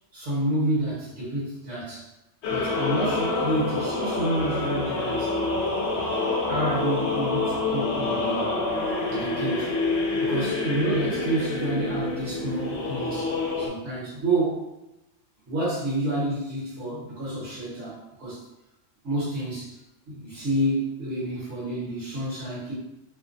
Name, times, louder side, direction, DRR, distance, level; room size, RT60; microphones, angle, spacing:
voice 1, 0.1-2.1 2.5-5.4 6.5-8.6 9.1-9.8 10.1-14.6 15.5-18.4 19.0-19.8 20.1-22.7, right 1 dB, 75° right, -8 dB, 1.5 m, -29 dB
sound 1, 2.4-13.7, left 3 dB, 70° left, 0.8 m, -27 dB
3.0 x 2.2 x 2.5 m, 0.94 s
omnidirectional pair, 1.2 m